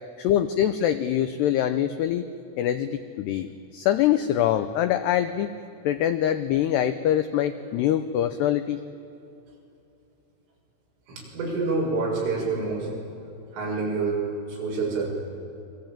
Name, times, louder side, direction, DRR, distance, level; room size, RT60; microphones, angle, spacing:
voice 1, 0.2-2.3 2.6-5.5 5.8-8.8, left 11 dB, 85° left, 10 dB, 2.4 m, -24 dB
voice 2, 11.1-12.9 13.5-15.1, right 3 dB, 70° right, -2 dB, 8.8 m, -27 dB
29.0 x 23.5 x 8.9 m, 2.7 s
omnidirectional pair, 5.9 m